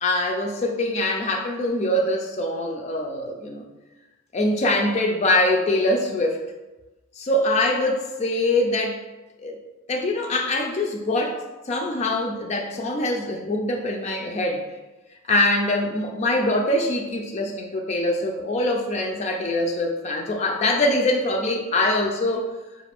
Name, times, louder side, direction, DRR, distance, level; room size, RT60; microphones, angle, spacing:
voice 1, 0.0-3.6 4.3-6.4 7.2-9.0 9.4-9.6 9.9-11.4 11.7-14.6 15.3-22.5, left 1 dB, 30° left, 1 dB, 0.4 m, -23 dB
4.8 x 2.4 x 3.4 m, 1.1 s
head